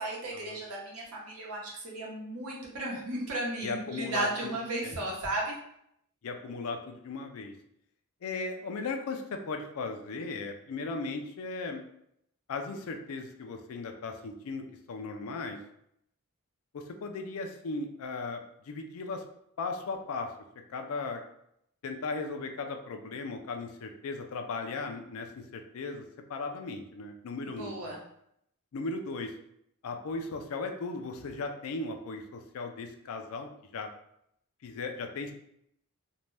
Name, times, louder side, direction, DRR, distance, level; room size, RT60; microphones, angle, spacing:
voice 1, 0.0-5.5 27.4-28.0, right 2 dB, 90° right, -2 dB, 0.9 m, -35 dB
voice 2, 3.6-4.3 4.8-4.9 6.2-7.5 8.2-11.8 12.5-15.6 16.7-19.2 19.6-20.3 20.7-21.2 21.8-26.0 26.3-28.0 28.7-29.3 29.8-33.9 34.6-35.3, left 3 dB, 70° left, 5 dB, 0.4 m, -37 dB
2.6 x 2.2 x 3.2 m, 0.74 s
head